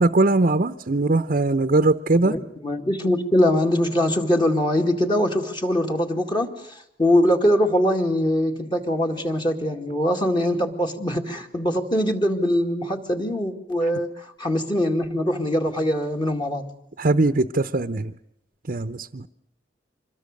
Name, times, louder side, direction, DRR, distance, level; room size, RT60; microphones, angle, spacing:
voice 1, 0.0-2.4 17.0-18.1 18.7-19.3, right 2 dB, 50° right, 8 dB, 0.8 m, -20 dB
voice 2, 2.1-16.7, left 1 dB, 25° left, 3 dB, 2.2 m, -22 dB
26.5 x 21.5 x 6.6 m, 0.80 s
head